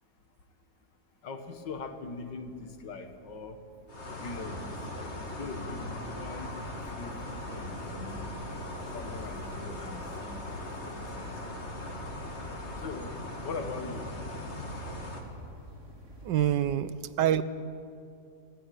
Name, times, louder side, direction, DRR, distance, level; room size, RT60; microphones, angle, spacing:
voice 1, 1.2-3.6 4.2-6.5 7.0-7.2 7.5-8.3 8.9-10.4 10.8-11.3 12.8-14.1, left 4 dB, 70° left, 7 dB, 2.1 m, -41 dB
sound 1, 1.4-16.7, equal, 60° right, 3.3 m, -51 dB
sound 2, 3.9-15.2, left 1 dB, 35° left, 2.6 m, -39 dB
voice 2, 16.2-17.4, right 10 dB, 75° right, 15 dB, 1.3 m, -26 dB
20.5 x 16.5 x 9.2 m, 2.4 s
omnidirectional pair, 2.0 m